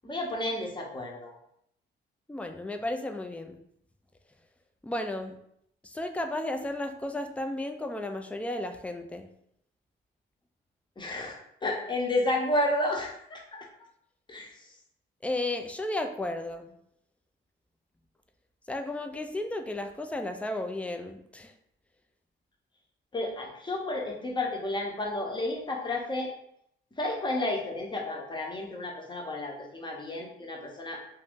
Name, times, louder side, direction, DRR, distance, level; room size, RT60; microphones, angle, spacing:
voice 1, 0.0-1.3 11.0-13.7 14.3-14.6 23.1-26.3 27.0-31.0, left 1 dB, 25° left, 0 dB, 0.8 m, -31 dB
voice 2, 2.3-3.6 4.8-5.3 5.8-9.3 15.2-16.7 18.7-21.5, left 1 dB, 5° left, 6 dB, 0.4 m, -33 dB
2.6 x 2.5 x 3.5 m, 0.73 s
cardioid pair, 90°, 20 cm